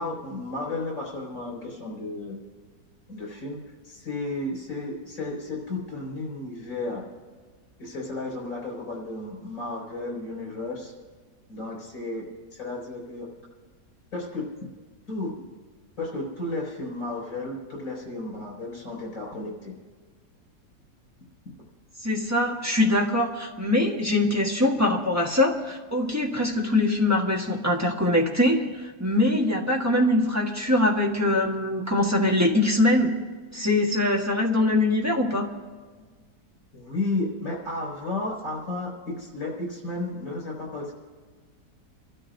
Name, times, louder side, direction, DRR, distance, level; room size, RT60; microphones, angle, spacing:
voice 1, 0.0-2.4 3.1-3.6 3.8-7.0 7.8-10.9 11.5-13.3 14.1-14.5 15.1-15.3 16.0-19.7 36.7-40.9, left 2 dB, 55° left, -2 dB, 6.3 m, -33 dB
voice 2, 22.0-33.2 33.5-35.5, left 1 dB, 10° right, -1 dB, 1.4 m, -23 dB
30.0 x 13.0 x 2.7 m, 1.5 s
omnidirectional pair, 1.8 m